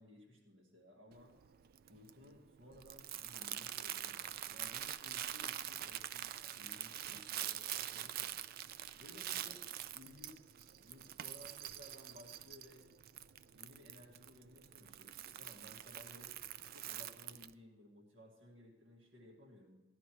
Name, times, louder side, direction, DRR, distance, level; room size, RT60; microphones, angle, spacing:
voice 1, 0.0-1.3 1.9-8.4 8.9-9.6 9.9-10.5 10.8-12.9 13.5-16.3 16.7-19.8, left 1 dB, 75° right, -1 dB, 1.9 m, -59 dB
Crumpling crinkling, 1.1-17.5, right 11 dB, 50° right, 0.3 m, -45 dB
16.0 x 11.0 x 3.1 m, 1.1 s
head